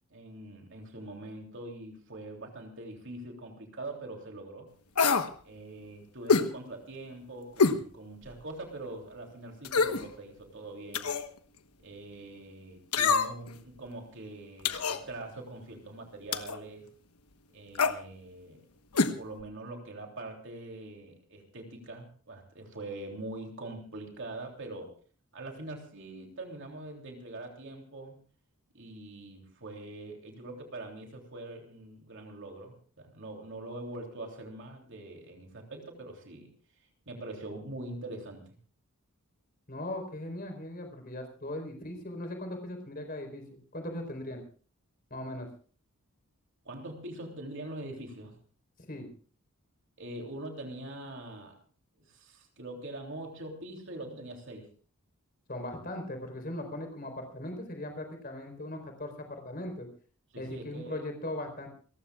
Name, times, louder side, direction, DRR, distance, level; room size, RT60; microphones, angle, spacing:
voice 1, 0.1-4.7 5.4-11.1 11.8-16.9 17.5-18.6 19.2-24.9 25.3-28.2 28.7-36.5 37.1-38.5 46.6-48.4 50.0-51.6 52.0-54.7 60.3-61.1, right 2 dB, 55° right, 2 dB, 3.1 m, -43 dB
sound 1, 5.0-5.3 6.3-6.5 7.6-7.8 8.3-8.4 9.6-10.0 10.9-11.3 12.9-13.5 14.6-15.0 16.3-16.6 17.7-18.0 18.9-19.1 19.4-19.5, left 5 dB, 85° left, 1.2 m, -25 dB
voice 2, 39.7-44.4 45.1-45.5 48.9-49.1 55.5-59.9 60.4-61.7, left 1 dB, 40° left, 5 dB, 4.2 m, -39 dB
29.0 x 15.0 x 2.4 m, 0.42 s
head